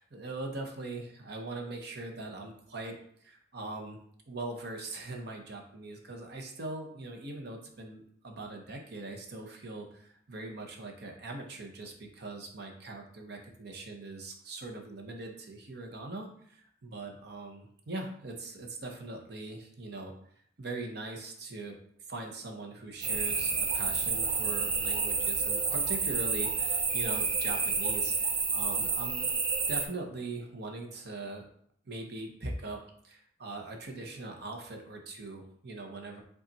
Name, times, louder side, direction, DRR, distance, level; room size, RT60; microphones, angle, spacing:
voice 1, 0.0-3.0 3.2-4.0 4.3-20.1 20.6-21.7 22.1-29.3 29.7-31.4 31.8-36.2, right 2 dB, 60° right, 2 dB, 0.8 m, -41 dB
sound 1, 23.0-29.9, right 5 dB, 30° right, 0.5 m, -30 dB
5.3 x 2.4 x 4.1 m, 0.64 s
head